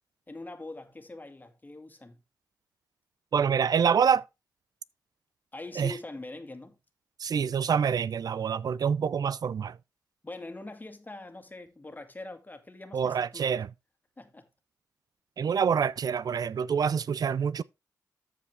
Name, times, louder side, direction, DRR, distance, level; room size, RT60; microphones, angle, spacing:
voice 1, 0.3-2.2 5.5-6.8 10.2-13.5 14.2-14.5, left 2 dB, 25° left, 2.0 m, -43 dB
voice 2, 3.3-4.2 5.8-5.9 7.2-9.8 12.9-13.7 15.4-17.6, right 7 dB, 65° right, 0.5 m, -26 dB
13.5 x 5.0 x 3.5 m
cardioid pair, 55°, 7 cm